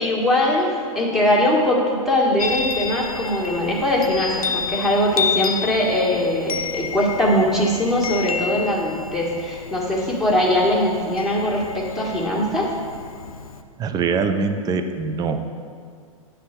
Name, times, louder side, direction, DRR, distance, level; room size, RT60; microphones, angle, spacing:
voice 1, 0.0-12.7, left 1 dB, ahead, -5 dB, 1.6 m, -21 dB
Chime, 2.4-13.6, left 6 dB, 85° left, 0.5 m, -30 dB
voice 2, 13.8-15.4, right 4 dB, 20° right, 7 dB, 0.5 m, -23 dB
9.5 x 3.4 x 5.9 m, 2.1 s
hypercardioid pair, 105°, 18 cm